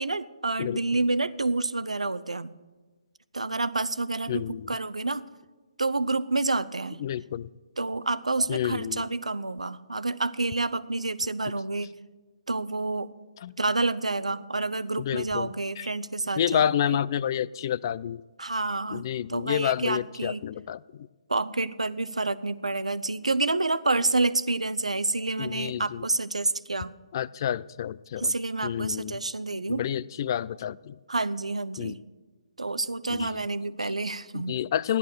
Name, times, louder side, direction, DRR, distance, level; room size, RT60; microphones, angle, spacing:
voice 1, 0.0-2.5 3.3-5.2 5.8-7.0 7.8-11.9 12.5-13.1 13.6-17.0 18.4-20.4 21.3-27.0 28.2-29.8 31.1-32.0 32.6-34.6, right 3 dB, 85° right, 15 dB, 0.7 m, -28 dB
voice 2, 4.3-4.7 7.0-7.5 8.5-9.0 13.4-13.5 15.0-15.9 16.4-18.2 18.9-21.1 25.4-26.1 27.1-28.3 28.6-29.2 29.7-31.0 31.8-31.9 33.1-33.4 34.3-35.0, left 10 dB, 40° left, 21 dB, 0.3 m, -29 dB
14.5 x 11.0 x 6.5 m, 1.3 s
figure-of-eight pair, 140°, 3 cm